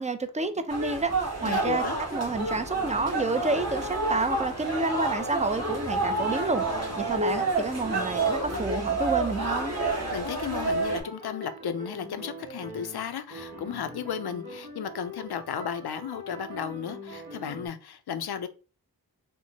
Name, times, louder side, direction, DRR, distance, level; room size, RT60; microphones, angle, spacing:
voice 1, 0.0-1.8 2.1-6.6 7.0-9.8, right 3 dB, 20° right, 0.4 m, -29 dB
sound 1, 0.7-11.0, right 3 dB, 40° right, 1.2 m, -29 dB
voice 2, 1.4-2.1 10.1-18.5, left 8 dB, 75° left, 0.5 m, -34 dB
sound 2, 2.2-7.6 7.9-17.7, right 1 dB, 60° right, 1.2 m, -43 dB
4.5 x 2.1 x 2.8 m
cardioid pair, 50°, 39 cm